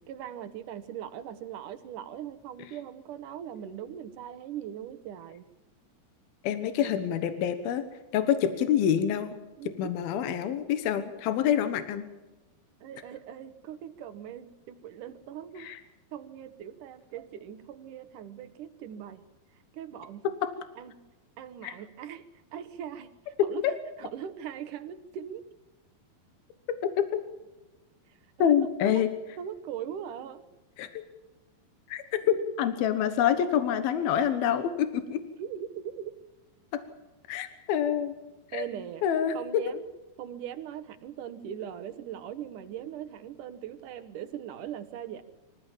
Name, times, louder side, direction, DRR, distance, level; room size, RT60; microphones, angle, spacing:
voice 1, 0.1-5.4 6.8-6.9 9.6-9.9 12.8-15.7 16.1-19.2 19.7-20.2 20.8-20.9 21.4-23.1 23.4-23.7 24.0-25.5 28.4-28.6 28.8-29.0 29.4-30.4 32.3-32.4 35.4-36.1 38.5-39.0 39.3-39.8 40.2-45.2, right 9 dB, 65° right, 11 dB, 2.5 m, -40 dB
voice 2, 6.4-7.8 8.1-9.3 9.8-12.1 15.6-15.8 20.4-20.5 21.6-21.7 23.6-23.7 27.0-27.1 28.4-29.1 30.8-31.0 31.9-32.0 32.6-35.2 36.7-36.8 37.3-38.1 38.5-38.7 39.0-39.6, left 9 dB, 80° left, 10 dB, 3.1 m, -26 dB
25.0 x 15.5 x 7.4 m, 1.1 s
omnidirectional pair, 4.3 m